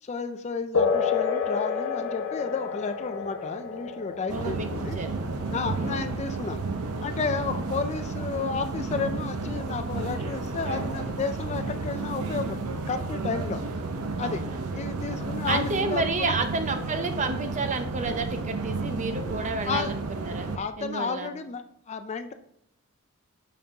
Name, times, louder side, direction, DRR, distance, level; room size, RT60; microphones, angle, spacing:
voice 1, 0.0-5.0 5.5-6.7 7.0-13.6 14.2-14.4 14.7-16.4 19.6-20.0 20.5-22.3, left 5 dB, 30° left, 9 dB, 0.3 m, -32 dB
sound 1, 0.7-8.8, left 6 dB, 75° left, 0.9 m, -31 dB
voice 2, 4.3-4.7 4.9-5.1 5.7-6.0 14.2-14.8 15.5-20.5 20.8-21.3, right 3 dB, 35° right, 7 dB, 0.6 m, -30 dB
sound 2, 4.3-20.6, right 3 dB, 85° right, 0.7 m, -32 dB
6.6 x 5.3 x 2.8 m, 0.76 s
head